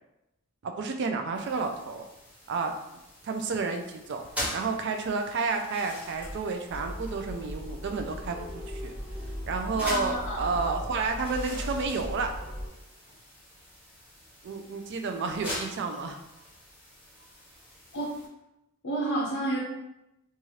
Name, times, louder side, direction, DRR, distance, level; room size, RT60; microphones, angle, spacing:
voice 1, 0.6-2.0 2.5-2.7 3.2-4.2 4.5-8.9 9.5-12.3 14.4-16.2, right 4 dB, 50° right, 5 dB, 0.3 m, -31 dB
sound 1, 1.3-18.3, equal, 5° right, 0.9 m, -43 dB
sound 2, 6.7-12.7, equal, 35° right, 1.1 m, -38 dB
voice 2, 9.8-10.5 17.9-18.1 18.8-19.6, right 1 dB, 60° left, -5 dB, 0.5 m, -30 dB
2.7 x 2.4 x 3.1 m, 0.91 s
head